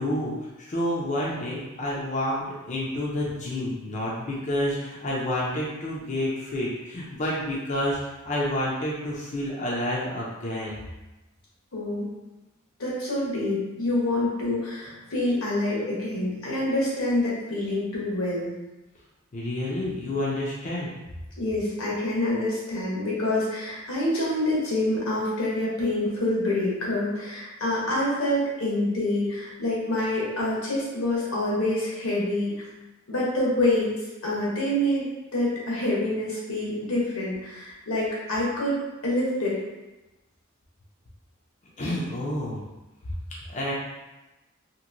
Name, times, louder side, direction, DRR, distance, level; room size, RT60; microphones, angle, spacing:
voice 1, 0.0-8.0 8.3-10.8 19.3-20.9 41.8-42.6 43.5-43.7, left 1 dB, 35° left, -5 dB, 0.5 m, -29 dB
voice 2, 11.7-12.1 12.8-18.5 21.4-32.5 33.1-33.9 34.2-35.1 35.3-38.8 39.0-39.5, left 1 dB, 90° left, -5 dB, 1.1 m, -26 dB
2.9 x 2.6 x 2.5 m, 1.0 s
head